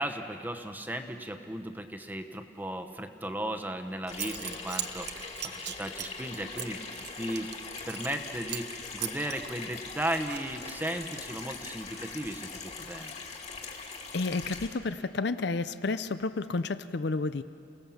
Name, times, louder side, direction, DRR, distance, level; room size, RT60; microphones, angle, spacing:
voice 1, 0.0-6.8 7.2-7.5 7.9-13.1, right 1 dB, 10° right, 7 dB, 1.0 m, -36 dB
Zipper (clothing) / Coin (dropping), 3.7-3.8 4.1-8.2 8.5-8.7 9.0-10.8, right 11 dB, 55° right, 1.0 m, -39 dB
Water tap faucet / Sink (filling or washing), 4.1-14.7, left 4 dB, 35° left, 2.2 m, -42 dB
voice 2, 14.1-17.4, left 3 dB, 55° left, 12 dB, 0.6 m, -31 dB
30.0 x 18.0 x 7.2 m, 2.6 s
head